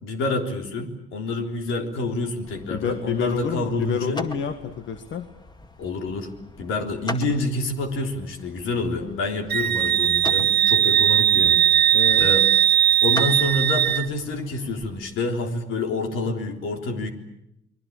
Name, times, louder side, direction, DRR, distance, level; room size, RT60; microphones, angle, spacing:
voice 1, 0.0-4.2 5.8-11.6 12.2-12.5 13.0-17.1, left 2 dB, 90° left, 4 dB, 3.6 m, -28 dB
sound 1, 2.4-15.0, left 1 dB, 20° left, 2.1 m, -41 dB
voice 2, 2.7-5.3 9.0-9.2 11.9-12.3, left 7 dB, 70° left, 7 dB, 1.7 m, -28 dB
Wind instrument woodwind instrument, 9.5-14.1, right 10 dB, 55° right, 1.2 m, -19 dB
29.5 x 21.5 x 8.7 m, 0.83 s
cardioid pair, 90°, 20 cm